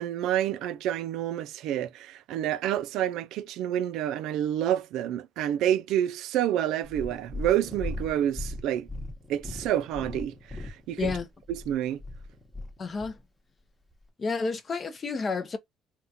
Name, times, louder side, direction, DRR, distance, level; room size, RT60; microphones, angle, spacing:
voice 1, 0.0-8.9 9.3-11.1 11.5-12.0, right 11 dB, 75° right, 0.3 m, -28 dB
Purr, 6.8-13.2 13.9-14.0, left 2 dB, 10° left, 0.9 m, -38 dB
voice 2, 12.8-13.2 14.2-15.6, left 4 dB, 35° left, 0.6 m, -30 dB
3.5 x 2.3 x 2.7 m
cardioid pair, 110°, 0 cm